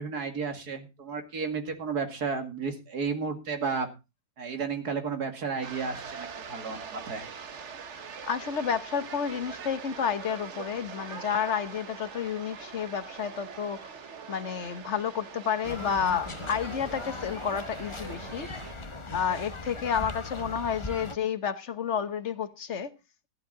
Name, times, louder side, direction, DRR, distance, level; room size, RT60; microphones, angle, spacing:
voice 1, 0.0-3.9 4.4-7.2, right 5 dB, 75° right, 2.7 m, -33 dB
sound 1, 5.6-18.7, right 6 dB, 50° right, 1.3 m, -43 dB
voice 2, 8.2-13.9 14.3-18.5 19.1-22.9, left 7 dB, 50° left, 1.3 m, -30 dB
sound 2, 15.6-21.2, left 2 dB, 20° left, 0.9 m, -39 dB
14.5 x 11.5 x 3.9 m
omnidirectional pair, 1.7 m